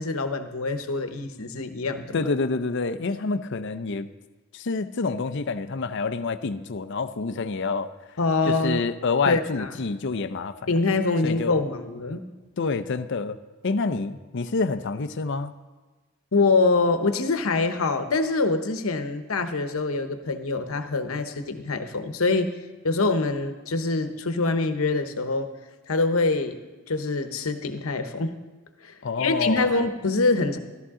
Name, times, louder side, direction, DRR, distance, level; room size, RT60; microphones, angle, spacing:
voice 1, 0.0-2.2 8.2-8.8 9.2-9.7 10.7-12.2 16.3-22.5 22.8-25.5 25.9-26.6 26.9-28.3 28.8-30.6, left 3 dB, 90° left, 8 dB, 1.0 m, -24 dB
voice 2, 2.1-4.1 4.5-7.9 8.5-10.7 11.2-11.6 12.6-13.4 13.6-15.5 29.0-29.7, left 4 dB, 60° left, 11 dB, 0.6 m, -27 dB
14.0 x 13.5 x 3.7 m, 1.2 s
head